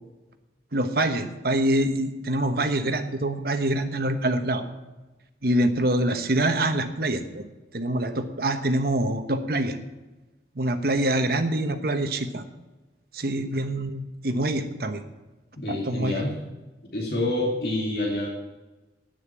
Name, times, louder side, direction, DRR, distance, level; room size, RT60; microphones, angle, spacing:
voice 1, 0.7-4.6 5.4-7.4 7.7-9.8 10.5-12.4 13.1-15.0 15.7-16.3, right 1 dB, 55° right, 7 dB, 1.2 m, -25 dB
voice 2, 15.6-16.3 16.9-18.3, left 1 dB, 60° left, -2 dB, 2.5 m, -27 dB
10.5 x 9.4 x 7.4 m, 1.1 s
head